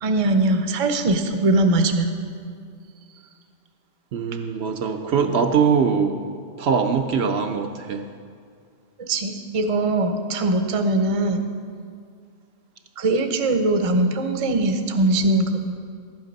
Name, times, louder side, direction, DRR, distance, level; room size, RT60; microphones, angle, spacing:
voice 1, 0.0-2.1 9.0-11.5 13.0-15.7, right 2 dB, 35° right, 6 dB, 0.6 m, -21 dB
voice 2, 4.1-6.2 6.6-8.0, right 6 dB, 65° right, 6 dB, 0.8 m, -22 dB
12.0 x 8.0 x 5.3 m, 2.2 s
omnidirectional pair, 1.2 m